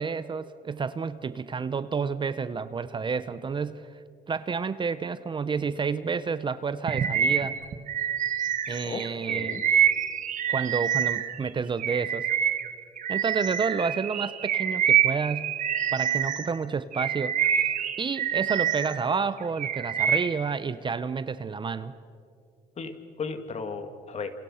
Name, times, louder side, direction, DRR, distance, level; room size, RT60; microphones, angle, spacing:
voice 1, 0.0-3.9 4.3-7.6 8.7-9.6 10.5-12.3 13.1-15.6 15.9-17.7 18.0-21.9, right 5 dB, 30° right, 14 dB, 0.8 m, -30 dB
Bird vocalization bird call bird song, 6.9-11.4 11.8-16.5 16.9-19.0 19.4-20.4, right 9 dB, 50° right, 1.6 m, -26 dB
voice 2, 9.3-9.6 22.8-24.3, left 5 dB, 40° left, 8 dB, 2.3 m, -35 dB
28.5 x 28.0 x 5.8 m, 2.4 s
cardioid pair, 110°, 17 cm